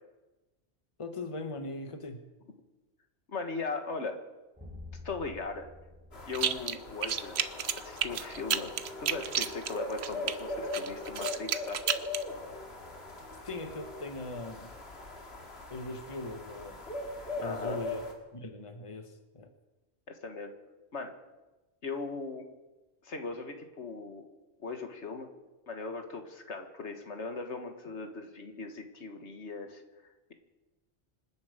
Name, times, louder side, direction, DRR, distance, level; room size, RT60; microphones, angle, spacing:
voice 1, 1.0-2.2 13.4-14.7 15.7-16.9 17.4-18.0 18.3-19.5, left 2 dB, 30° left, 7 dB, 1.4 m, -40 dB
voice 2, 3.3-4.2 5.0-5.7 6.3-7.4 7.7-8.7 9.0-11.9 17.3-17.8 20.1-20.5 20.9-21.1 21.8-22.5 23.0-24.3 24.6-25.3 25.7-30.3, left 4 dB, 85° left, 6 dB, 1.9 m, -39 dB
sound 1, 4.6-7.2, left 2 dB, 10° right, 6.0 m, -49 dB
sound 2, 6.1-18.1, left 2 dB, 65° left, 2.4 m, -40 dB
sound 3, 6.3-6.8 7.0-10.3 10.7-12.2, right 8 dB, 70° right, 1.0 m, -31 dB
26.0 x 10.5 x 5.1 m, 1.1 s
omnidirectional pair, 1.1 m